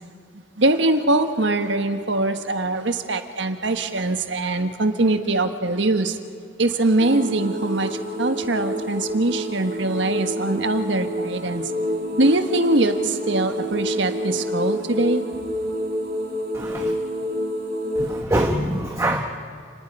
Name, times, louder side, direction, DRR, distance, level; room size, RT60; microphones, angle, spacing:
voice 1, 0.6-6.2 6.6-7.9 8.2-11.6 12.2-15.2, right 2 dB, 70° right, 8 dB, 1.4 m, -22 dB
sound 1, 7.0-18.2, equal, 50° right, 2.6 m, -28 dB
voice 2, 16.5-16.9 18.0-19.2, right 1 dB, 15° right, 3 dB, 1.0 m, -24 dB
29.5 x 19.5 x 5.5 m, 2.2 s
head